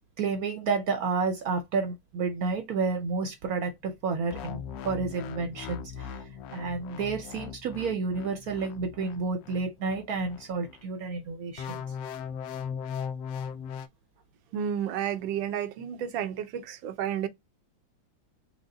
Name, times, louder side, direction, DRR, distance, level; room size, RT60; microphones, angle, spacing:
voice 1, 0.2-4.6 4.8-11.8, right 4 dB, 65° right, 1.0 m, -30 dB
sound 1, 4.3-10.8 11.6-13.9, left 7 dB, 80° left, 1.2 m, -39 dB
voice 2, 14.5-17.3, right 9 dB, 85° right, 1.4 m, -31 dB
4.9 x 2.1 x 3.7 m
omnidirectional pair, 2.0 m